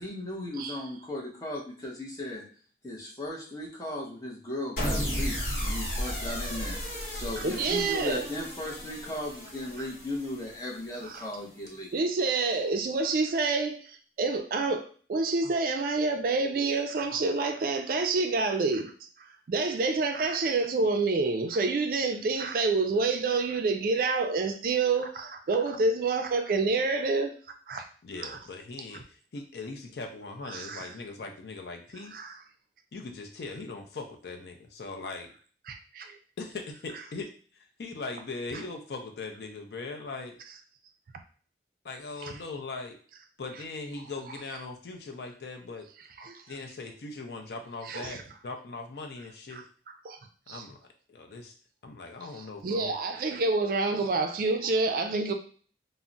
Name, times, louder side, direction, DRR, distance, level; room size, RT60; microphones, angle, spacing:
voice 1, 0.0-2.4 2.8-11.9, left 1 dB, 20° left, -3 dB, 0.7 m, -37 dB
sound 1, 4.8-11.1, equal, 50° left, 0.9 m, -34 dB
voice 2, 7.4-8.3 11.0-11.2 11.9-18.9 19.2-27.3 27.7-27.9 28.2-28.4 30.5-30.9 32.1-32.4 35.7-36.2 42.2-42.4 46.2-46.4 47.9-48.2 49.5-49.6 50.0-50.2 50.5-50.6 52.6-55.3, right 3 dB, 50° right, 6 dB, 0.3 m, -28 dB
voice 3, 28.0-32.1 32.9-35.3 36.4-37.3 37.8-40.4 41.8-43.0 43.4-45.9 46.5-49.6 50.5-50.8 51.1-51.5 51.8-52.9, left 3 dB, 65° left, 3 dB, 0.5 m, -40 dB
2.3 x 2.0 x 3.8 m, 0.43 s
head